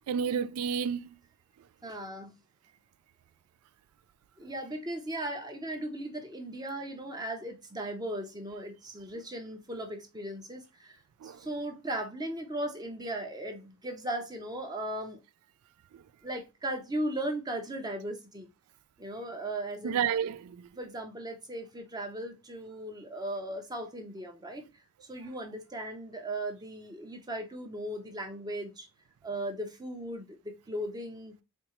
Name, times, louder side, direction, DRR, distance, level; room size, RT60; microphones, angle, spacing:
voice 1, 0.1-1.1 11.2-11.4 15.9-16.0 19.8-20.7, right 7 dB, 90° right, 0.3 m, -30 dB
voice 2, 1.8-2.3 4.4-15.2 16.2-18.5 19.0-20.0 20.7-24.7 25.0-28.9 29.2-31.4, right 1 dB, 20° right, 0.6 m, -37 dB
4.4 x 2.8 x 2.9 m
head